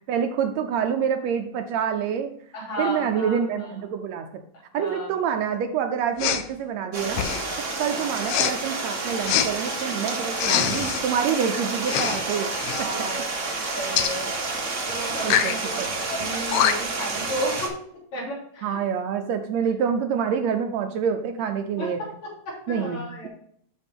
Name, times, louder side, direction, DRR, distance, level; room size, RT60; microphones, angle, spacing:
voice 1, 0.1-2.3 2.8-4.3 4.7-7.2 7.8-12.5 12.8-13.1 15.2-15.9 18.6-22.0 22.7-23.3, right 7 dB, 75° right, 6 dB, 1.7 m, -27 dB
voice 2, 2.5-3.7 4.7-5.1 7.9-8.2 12.4-14.3 14.9-15.8 16.1-17.7 18.1-18.8 21.8-21.9 22.2-23.3, equal, 65° left, -5 dB, 4.4 m, -33 dB
Respiratory sounds, 6.2-6.5 7.1-7.5 8.3-8.5 9.3-9.5 10.3-11.0 11.8-12.2 12.5-12.8 14.0-14.1 15.2-15.6 16.2-16.3 16.5-17.0, left 10 dB, 85° left, 1.3 m, -24 dB
Stream, 6.9-17.7, right 3 dB, 50° right, 0.9 m, -29 dB
12.0 x 4.9 x 3.5 m, 0.64 s
omnidirectional pair, 3.4 m